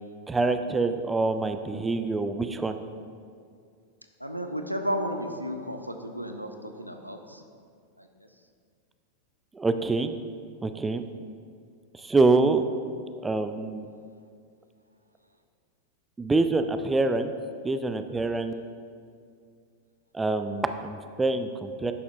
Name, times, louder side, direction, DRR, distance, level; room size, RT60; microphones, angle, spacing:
voice 1, 0.3-2.8 9.5-10.1 10.6-11.0 12.0-12.6 13.2-13.8 16.2-17.3 17.6-18.5 20.1-21.9, right 3 dB, 10° right, 9 dB, 0.3 m, -25 dB
voice 2, 4.2-7.4 8.0-8.3, equal, 90° right, 6 dB, 0.5 m, -33 dB
10.5 x 6.8 x 2.5 m, 2.2 s
figure-of-eight pair, 90°, 0 cm